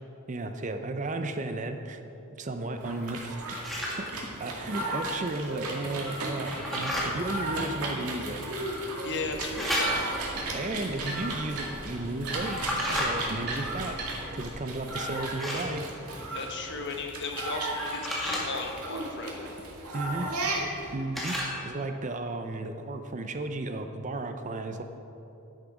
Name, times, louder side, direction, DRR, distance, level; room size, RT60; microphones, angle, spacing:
voice 1, 0.3-2.0 2.4-3.5 4.0-4.1 4.4-8.5 10.5-12.6 12.9-14.0 14.3-15.8 19.9-20.3 20.9-21.4 21.6-24.8, right 2 dB, 35° right, 7 dB, 0.5 m, -34 dB
sound 1, 2.8-20.9, right 2 dB, 90° right, 2.1 m, -35 dB
sound 2, 3.6-4.0 6.5-7.1 9.6-10.2 12.5-13.1 15.4-15.7 17.8-18.4 21.1-21.6, equal, ahead, 1.9 m, -31 dB
voice 2, 9.0-10.2 16.3-19.5, left 3 dB, 50° left, 3 dB, 1.1 m, -36 dB
sound 3, 9.2-14.5, right 1 dB, 50° right, 2.6 m, -40 dB
10.5 x 10.0 x 4.9 m, 2.9 s
head